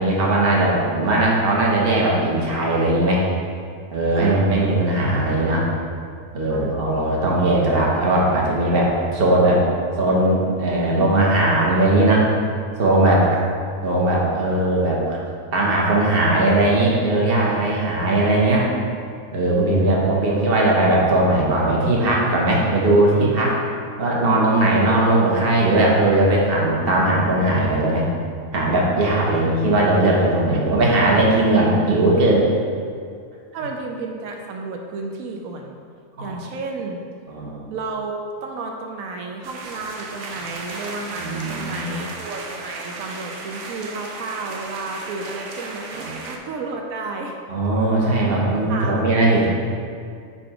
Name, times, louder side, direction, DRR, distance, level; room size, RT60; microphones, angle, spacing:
voice 1, 0.0-3.2 3.9-5.7 6.3-9.6 10.0-12.3 12.8-13.3 13.8-15.2 15.5-18.7 19.3-23.5 24.0-28.1 28.5-32.5 36.2-36.4 37.3-37.7 41.2-41.9 46.0-46.1 47.5-49.5, right 2 dB, 45° right, -3 dB, 1.2 m, -19 dB
voice 2, 4.2-4.8 6.5-6.7 13.3-13.5 19.6-20.2 30.5-30.9 33.5-35.8 36.2-37.0 37.7-47.4 48.7-49.5, right 3 dB, 85° right, 2 dB, 1.0 m, -32 dB
sound 1, 39.4-46.4, right 3 dB, 65° right, 0.9 m, -35 dB
5.4 x 4.3 x 4.8 m, 2.2 s
omnidirectional pair, 1.4 m